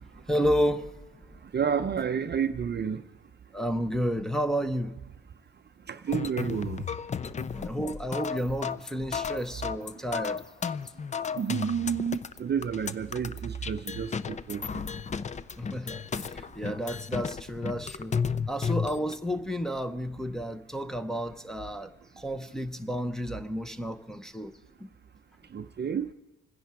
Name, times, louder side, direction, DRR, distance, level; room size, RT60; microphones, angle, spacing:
voice 1, 0.3-0.9 3.5-4.9 7.5-10.4 15.6-18.2 18.5-21.9 22.2-24.5, equal, ahead, 0.8 m, -31 dB
voice 2, 1.5-3.0 5.9-6.8 11.4-14.8 25.5-26.1, right 7 dB, 35° right, 0.6 m, -30 dB
sound 1, 6.1-19.2, left 6 dB, 25° left, 0.4 m, -33 dB
26.0 x 10.0 x 4.8 m
cardioid pair, 90°, 30 cm